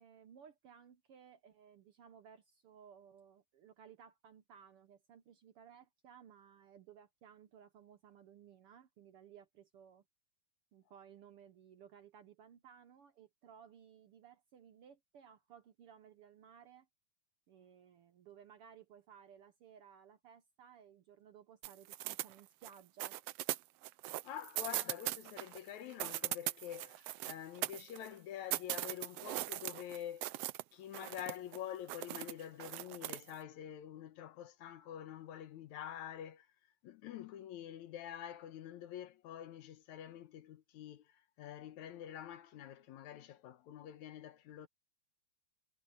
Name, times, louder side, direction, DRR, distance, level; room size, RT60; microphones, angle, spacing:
voice 1, 0.0-10.0 10.7-16.9 17.5-23.2, right 8 dB, 65° right, 1.5 m, -59 dB
sound 1, 21.6-22.7 23.0-25.6 25.9-28.1 28.5-30.6 30.9-31.6 31.9-33.3, right 16 dB, 85° right, 1.4 m, -40 dB
voice 2, 24.2-30.3 30.7-36.5 36.8-41.1 41.4-44.7, left 10 dB, 75° left, 2.3 m, -47 dB
omnidirectional pair, 3.4 m